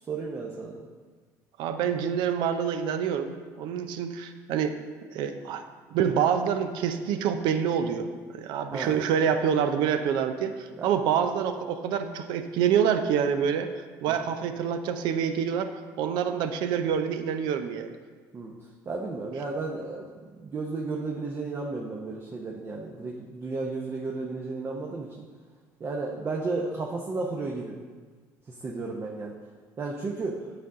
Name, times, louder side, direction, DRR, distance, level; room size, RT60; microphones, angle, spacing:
voice 1, 0.1-0.8 8.7-9.0 10.8-10.9 18.3-18.5 18.9-25.1 25.8-27.8 28.6-29.3 29.8-30.4, right 3 dB, 30° right, -1 dB, 0.7 m, -33 dB
voice 2, 1.6-4.8 5.0-5.6 5.9-8.1 8.3-15.7 16.0-18.0, right 8 dB, 70° right, 9 dB, 0.5 m, -27 dB
9.1 x 4.0 x 3.7 m, 1.5 s
supercardioid pair, 95°, 8 cm